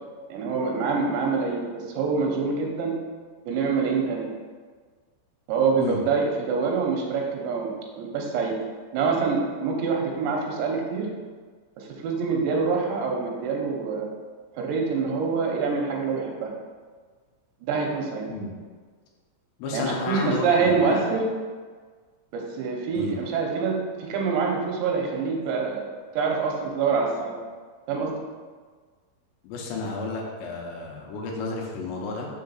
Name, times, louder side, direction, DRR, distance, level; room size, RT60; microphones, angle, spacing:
voice 1, 0.3-2.9 3.5-4.3 5.5-8.5 8.9-11.1 11.8-14.1 14.6-16.5 17.6-18.3 19.7-21.2 22.3-25.8 26.1-27.4 27.9-28.2, right 5 dB, 85° right, 0 dB, 3.1 m, -25 dB
voice 2, 19.6-21.0 22.9-23.2 29.4-32.3, left 3 dB, 85° left, -1 dB, 3.2 m, -31 dB
7.0 x 3.7 x 5.7 m, 1.5 s
omnidirectional pair, 5.1 m